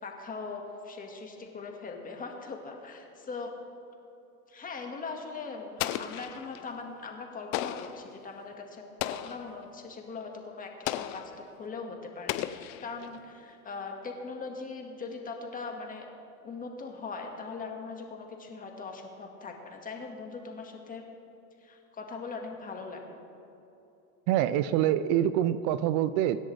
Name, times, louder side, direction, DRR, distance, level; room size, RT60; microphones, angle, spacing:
voice 1, 0.0-3.5 4.5-16.1 16.4-21.0 21.6-23.2, left 4 dB, 20° left, 2 dB, 1.8 m, -40 dB
Explosion, 5.8-6.7 7.5-8.1 9.0-9.5 10.9-11.4 12.3-13.2, left 13 dB, 40° left, 0.7 m, -35 dB
voice 2, 24.3-26.4, right 11 dB, 35° right, 14 dB, 0.4 m, -25 dB
25.0 x 10.5 x 3.4 m, 2.9 s
hypercardioid pair, 125°, 45 cm